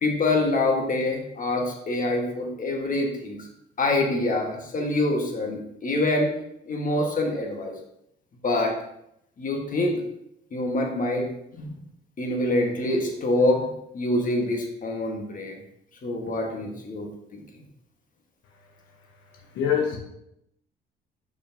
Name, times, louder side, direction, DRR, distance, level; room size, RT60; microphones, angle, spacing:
voice 1, 0.0-3.4 3.8-6.3 6.7-7.7 8.4-8.7 9.4-10.0 10.5-11.8 12.2-15.6 16.0-17.1, left 2 dB, 45° left, 1 dB, 1.5 m, -25 dB
voice 2, 19.3-20.0, left 8 dB, 85° left, 1 dB, 1.0 m, -25 dB
6.7 x 5.7 x 2.8 m, 0.78 s
cardioid pair, 90°, 20 cm